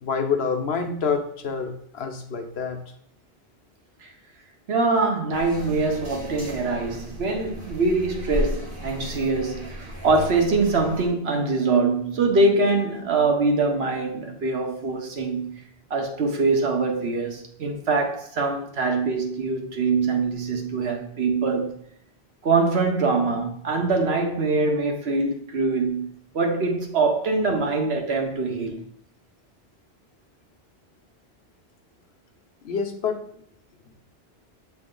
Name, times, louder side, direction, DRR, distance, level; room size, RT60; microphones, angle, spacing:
voice 1, 0.0-2.8 32.6-33.3, left 5 dB, 80° left, 1.1 m, -27 dB
voice 2, 4.7-15.6 15.9-21.8 22.4-26.1 26.3-28.8, right 3 dB, 80° right, 1.3 m, -23 dB
sound 1, 5.3-11.1, equal, 55° right, 2.4 m, -35 dB
7.6 x 3.4 x 3.8 m
omnidirectional pair, 1.1 m